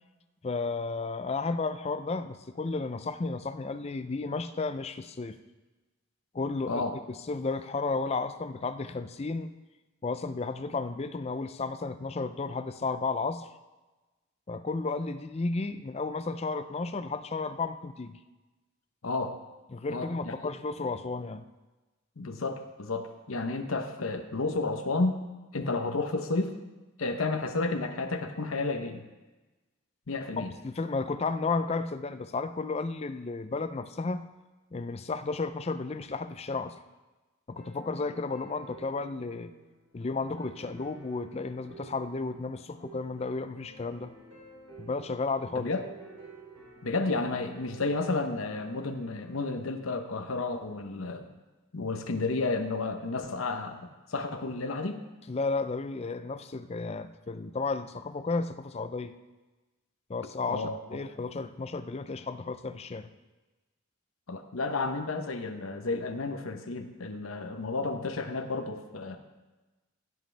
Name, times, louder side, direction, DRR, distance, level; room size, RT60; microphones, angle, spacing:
voice 1, 0.4-5.4 6.3-6.8 7.3-9.5 10.0-13.5 14.5-18.2 19.7-21.4 25.6-25.7 30.4-34.3 34.7-36.8 37.5-39.5 39.9-44.1 44.8-45.7 55.3-59.2 60.1-63.1, left 3 dB, 30° left, 10 dB, 0.4 m, -33 dB
voice 2, 19.0-19.4 19.9-20.3 22.2-25.2 25.5-26.5 27.0-29.0 30.1-30.5 45.5-45.8 46.8-51.3 51.7-55.0 60.5-60.8 64.3-69.2, left 3 dB, 75° left, 6 dB, 0.9 m, -31 dB
sound 1, 37.6-49.6, right 3 dB, 75° right, 3.0 m, -52 dB
15.5 x 7.7 x 3.4 m, 1.2 s
head